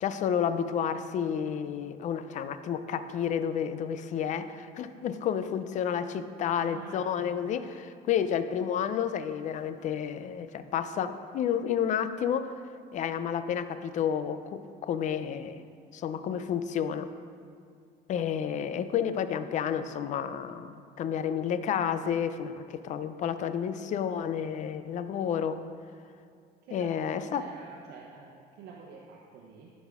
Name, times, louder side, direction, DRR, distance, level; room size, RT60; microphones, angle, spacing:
voice 1, 0.0-12.5 12.9-15.6 15.9-17.1 18.1-25.6 26.7-27.4, left 8 dB, 45° left, 11 dB, 0.4 m, -30 dB
voice 2, 6.5-7.6 26.7-29.7, right 4 dB, 90° right, -2 dB, 0.9 m, -48 dB
11.5 x 6.2 x 3.6 m, 2.3 s
cardioid pair, 135°, 17 cm